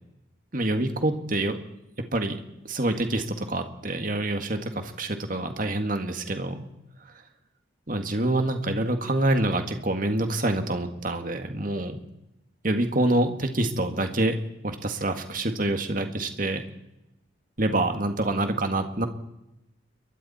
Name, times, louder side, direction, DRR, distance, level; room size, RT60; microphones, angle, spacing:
voice 1, 0.5-1.6 2.1-2.4 2.7-6.6 7.9-12.0 12.6-14.3 14.6-16.6 17.6-19.1, right 1 dB, 45° right, 6 dB, 1.9 m, -26 dB
29.0 x 23.0 x 4.3 m, 0.90 s
head